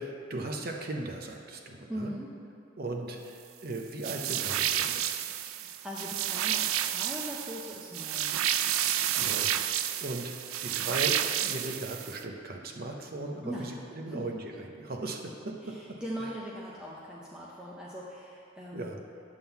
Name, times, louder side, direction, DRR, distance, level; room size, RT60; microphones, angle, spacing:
voice 1, 0.0-2.1 2.8-5.2 9.2-10.3 10.6-15.8 18.7-19.0, right 2 dB, 45° right, 2 dB, 0.7 m, -38 dB
voice 2, 1.9-2.3 5.5-8.5 13.4-13.8 14.1-14.3 15.6-19.0, equal, 5° right, -6 dB, 0.6 m, -40 dB
sound 1, 4.0-12.2, right 11 dB, 85° right, 0.3 m, -30 dB
10.5 x 3.8 x 7.0 m, 2.5 s
head